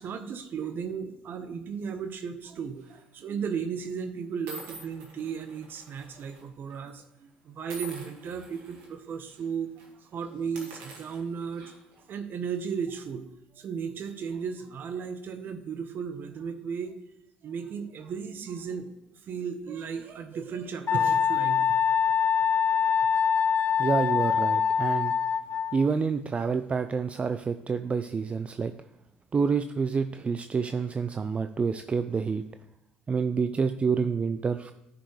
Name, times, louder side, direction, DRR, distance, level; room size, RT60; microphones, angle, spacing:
voice 1, 0.0-13.3 13.5-16.9 17.4-21.8, right 6 dB, 50° right, 8 dB, 0.8 m, -35 dB
sound 1, 2.8-3.1 3.8-3.9 4.5-6.4 6.7-6.9 7.7-8.9 9.3-9.4 9.7-9.9 10.4-12.0, right 3 dB, 80° right, 2.0 m, -46 dB
Wind instrument woodwind instrument, 20.9-25.9, left 7 dB, 40° left, 0.5 m, -24 dB
voice 2, 23.8-25.1 25.7-28.7 29.3-32.4 33.1-34.7, right 5 dB, 30° right, 9 dB, 0.4 m, -28 dB
10.0 x 5.0 x 3.3 m, 0.87 s
hypercardioid pair, 65°, 4 cm